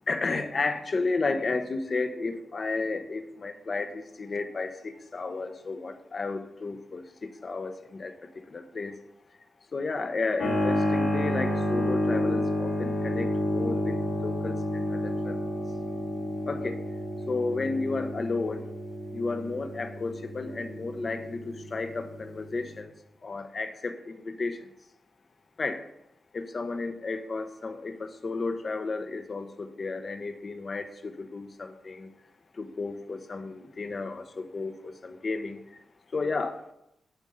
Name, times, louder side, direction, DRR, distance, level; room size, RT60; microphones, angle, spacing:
voice 1, 0.1-8.1 8.5-8.9 9.7-15.4 16.5-16.8 17.3-18.7 19.1-22.9 23.2-24.6 25.6-25.8 26.3-32.1 32.5-35.6 36.1-36.6, left 3 dB, 50° left, 8 dB, 0.8 m, -32 dB
Keyboard (musical), 10.4-22.8, left 1 dB, 90° left, 2.4 m, -30 dB
8.9 x 3.7 x 5.4 m, 0.83 s
cardioid pair, 60°, 0 cm